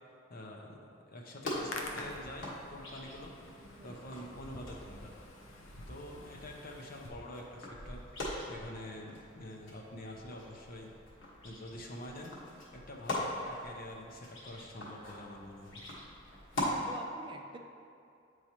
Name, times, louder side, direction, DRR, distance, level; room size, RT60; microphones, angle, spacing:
voice 1, 0.3-3.3 3.8-5.1 5.9-10.9 11.4-12.3 12.7-15.8, left 1 dB, 50° left, 0 dB, 0.7 m, -46 dB
Hands, 1.4-7.1, left 2 dB, 85° left, 0.7 m, -48 dB
sound 1, 1.4-16.7, left 1 dB, 70° left, 1.4 m, -43 dB
voice 2, 16.6-17.6, right 2 dB, 25° right, 4 dB, 0.4 m, -48 dB
8.8 x 4.7 x 2.9 m, 2.5 s
head